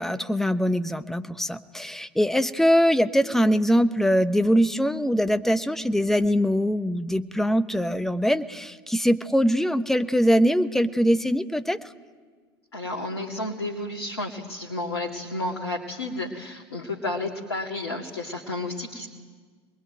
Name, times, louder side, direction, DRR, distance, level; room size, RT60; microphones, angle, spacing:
voice 1, 0.0-11.8, equal, 5° left, 10 dB, 1.1 m, -22 dB
voice 2, 12.7-19.1, left 2 dB, 85° left, 0 dB, 2.3 m, -31 dB
26.5 x 21.0 x 9.2 m, 1.6 s
figure-of-eight pair, 75°, 13 cm